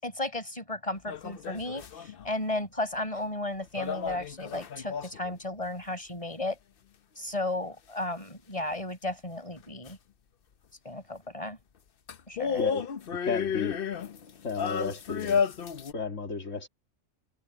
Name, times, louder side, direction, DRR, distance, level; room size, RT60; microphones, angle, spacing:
voice 1, 0.0-6.6 7.2-10.0 10.8-11.6 12.3-12.7, left 2 dB, 25° left, 6.7 m, -34 dB
sound 1, 1.0-2.3 3.8-5.4 9.9-10.0 12.1-15.9, left 7 dB, 50° left, 0.9 m, -32 dB
voice 2, 12.5-12.9 13.2-13.8 14.4-15.4 15.9-16.7, left 4 dB, 75° left, 2.4 m, -33 dB
omnidirectional pair, 1.3 m